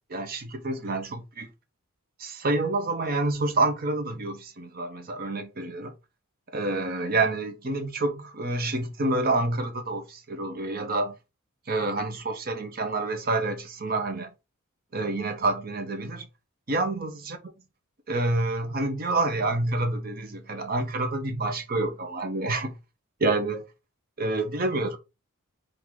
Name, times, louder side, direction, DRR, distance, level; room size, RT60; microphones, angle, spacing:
voice 1, 0.1-1.5 2.2-5.9 6.5-11.1 11.7-14.3 14.9-16.3 16.7-17.4 18.1-22.7 23.2-23.6 24.2-25.0, right 2 dB, 40° right, 0.7 m, -28 dB
3.9 x 2.5 x 4.5 m
head